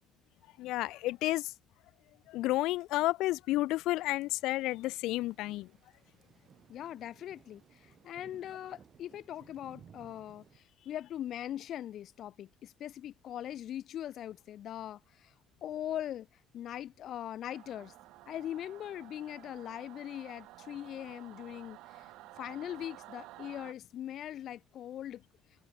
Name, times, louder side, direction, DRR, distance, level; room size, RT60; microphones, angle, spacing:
voice 1, 0.6-1.5 2.3-5.7, left 17 dB, 85° left, 0.5 m, -31 dB
Thunder / Rain, 4.3-10.6, right 8 dB, 40° right, 6.3 m, -60 dB
voice 2, 6.7-15.3 15.6-16.3 16.5-17.9 18.3-22.1 22.4-25.2, left 11 dB, 55° left, 0.9 m, -41 dB
Singing / Musical instrument, 17.5-23.7, right 18 dB, 85° right, 7.4 m, -52 dB
cardioid pair, 135°, 0 cm